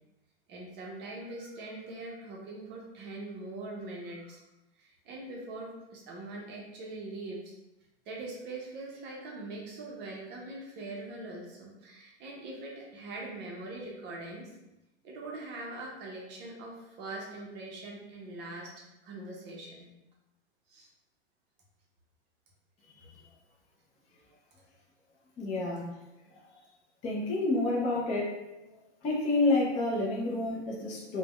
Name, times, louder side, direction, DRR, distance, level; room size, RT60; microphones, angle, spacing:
voice 1, 0.5-4.4 4.8-7.6 8.1-14.5 15.0-19.9 20.7-20.9, right 2 dB, 30° right, -2 dB, 0.6 m, -42 dB
voice 2, 25.4-25.9 26.4-26.5 27.0-28.4 29.0-31.2, left 2 dB, 20° left, -3 dB, 0.4 m, -29 dB
3.3 x 2.1 x 2.2 m, 0.95 s
hypercardioid pair, 115°, 34 cm